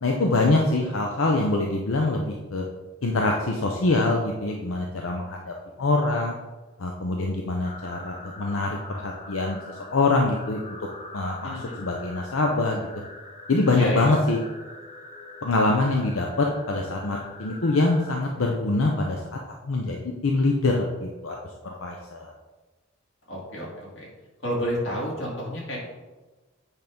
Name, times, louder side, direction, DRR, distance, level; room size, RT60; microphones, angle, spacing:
voice 1, 0.0-2.6 3.0-6.4 6.8-10.8 11.1-12.9 13.5-14.4 15.4-19.4 19.6-21.4 21.6-22.3, left 2 dB, 85° left, 1 dB, 0.7 m, -24 dB
sound 1, 7.6-18.2, left 2 dB, 35° left, 0.9 m, -43 dB
voice 2, 11.4-11.8 13.7-14.1 23.3-24.1 24.4-25.8, equal, 65° left, -4 dB, 2.4 m, -30 dB
8.2 x 3.6 x 5.2 m, 1.2 s
head